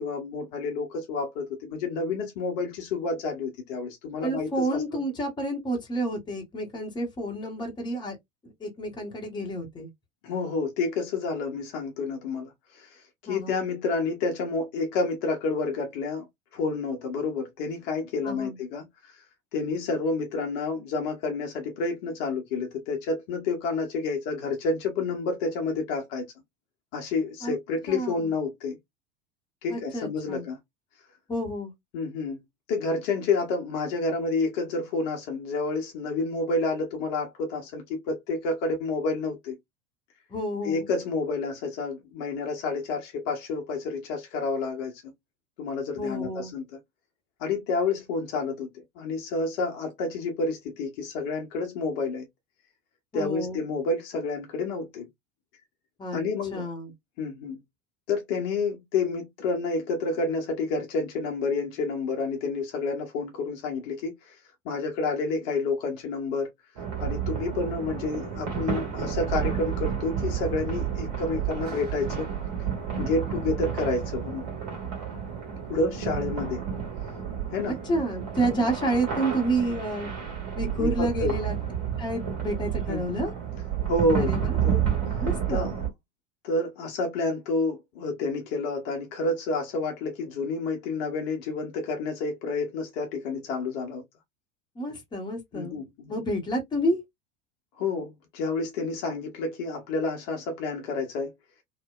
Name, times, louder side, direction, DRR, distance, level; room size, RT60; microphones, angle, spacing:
voice 1, 0.0-5.0 10.2-13.0 13.3-16.3 16.5-19.2 19.5-26.3 26.9-28.8 29.6-30.6 31.9-32.4 32.7-39.6 40.6-45.1 45.6-46.8 47.4-48.7 49.0-52.3 53.1-55.1 56.1-56.7 57.2-57.6 58.1-64.3 64.6-66.5 67.0-72.3 73.0-74.5 75.7-76.6 77.5-77.8 80.8-81.3 82.9-83.0 83.9-84.3 84.6-84.9 85.5-85.7 86.4-94.0 95.5-96.1 97.8-101.3, left 3 dB, 45° left, 0.9 m, -29 dB
voice 2, 4.2-8.2 8.4-9.9 13.3-13.6 18.2-18.6 27.4-27.5 27.9-28.3 29.7-30.5 31.3-31.7 40.3-40.9 46.0-46.5 53.1-53.6 56.0-56.2 56.5-56.9 76.4-76.6 77.7-80.1 80.6-81.5 82.0-83.3 84.2-84.5 85.2-85.7 94.8-97.0, right 1 dB, 10° left, 1.0 m, -30 dB
sound 1, 66.8-85.9, right 8 dB, 45° right, 1.6 m, -30 dB
2.8 x 2.1 x 2.3 m
figure-of-eight pair, 80°, 37 cm